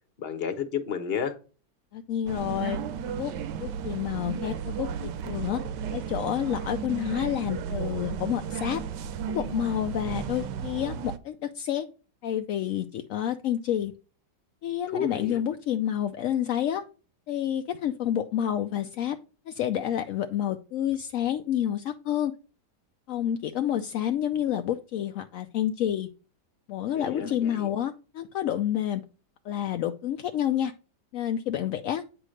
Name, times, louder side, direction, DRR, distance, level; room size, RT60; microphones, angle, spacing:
voice 1, 0.2-1.3 14.9-15.4 27.0-27.7, left 7 dB, 40° left, 1.0 m, -31 dB
voice 2, 1.9-2.8 3.2-3.3 3.6-5.6 5.9-8.8 9.3-11.9 12.2-13.9 14.6-16.8 17.3-19.2 19.5-22.3 23.1-26.1 26.7-29.0 29.4-30.7 31.1-32.0, left 10 dB, 70° left, 0.8 m, -29 dB
sound 1, 2.3-11.2, right 7 dB, 85° right, 1.3 m, -34 dB
9.0 x 3.1 x 6.3 m
omnidirectional pair, 1.9 m